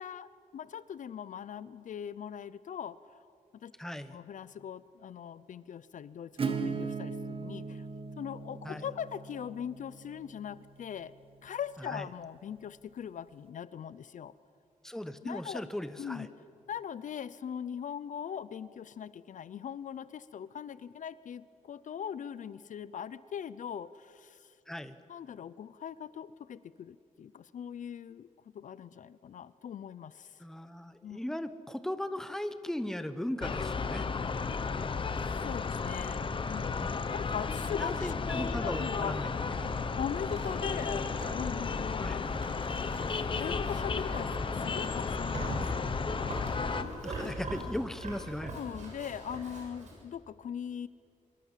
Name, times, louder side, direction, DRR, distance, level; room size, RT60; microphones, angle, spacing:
voice 1, 0.0-3.3 3.6-3.7 4.1-7.9 8.2-11.1 11.4-14.3 15.2-15.6 16.0-16.3 16.7-24.5 25.1-28.3 28.5-30.4 31.0-31.2 35.2-39.2 40.0-42.3 43.4-45.9 48.5-50.9, left 8 dB, 65° left, 17 dB, 0.6 m, -41 dB
voice 2, 3.8-4.2 8.6-8.9 11.9-12.1 14.8-16.3 24.7-25.0 30.4-34.1 36.8-36.9 37.8-39.3 39.6-39.7 42.0-42.2 47.0-48.5, left 1 dB, 5° left, 10 dB, 1.0 m, -37 dB
Acoustic guitar / Strum, 6.4-11.9, right 4 dB, 40° right, 1.7 m, -39 dB
sound 1, 33.4-46.8, left 4 dB, 40° left, 1.1 m, -33 dB
Livestock farm animals working animals, 38.3-50.0, right 1 dB, 60° right, 6.7 m, -43 dB
25.0 x 23.5 x 7.4 m, 2.4 s
wide cardioid pair, 145°, 14 cm